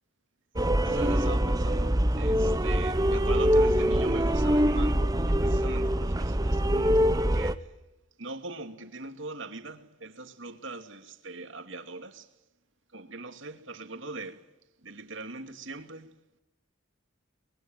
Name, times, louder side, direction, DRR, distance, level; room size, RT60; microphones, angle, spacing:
sound 1, 0.6-7.5, equal, 20° right, 0.9 m, -24 dB
voice 1, 0.6-7.7 8.2-12.3 12.9-14.5 14.8-16.1, right 3 dB, 65° right, 2.5 m, -41 dB
24.5 x 22.5 x 9.1 m
head